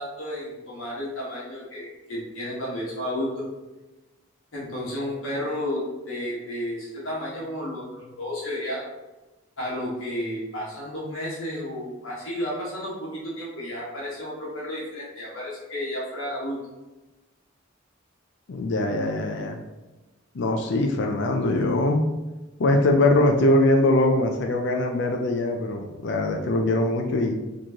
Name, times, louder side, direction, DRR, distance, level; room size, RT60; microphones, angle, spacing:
voice 1, 0.0-3.4 4.5-8.8 9.6-16.6, left 1 dB, 75° left, -6 dB, 1.3 m, -32 dB
voice 2, 18.5-19.6 20.3-22.1 22.6-27.3, left 2 dB, 60° left, 2 dB, 0.4 m, -22 dB
4.4 x 3.0 x 2.8 m, 1.1 s
head